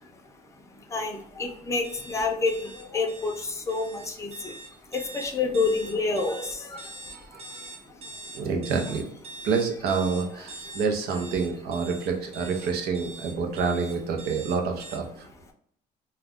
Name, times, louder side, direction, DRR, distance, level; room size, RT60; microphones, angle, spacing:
voice 1, 0.6-8.3 10.6-10.8, left 3 dB, 15° left, 3 dB, 0.5 m, -30 dB
sound 1, 1.8-15.0, right 2 dB, 35° right, 0.6 m, -43 dB
voice 2, 6.8-7.8 8.3-9.0 9.4-15.3, right 5 dB, 70° right, 3 dB, 0.7 m, -28 dB
2.3 x 2.2 x 3.5 m, 0.68 s
cardioid pair, 110°, 17 cm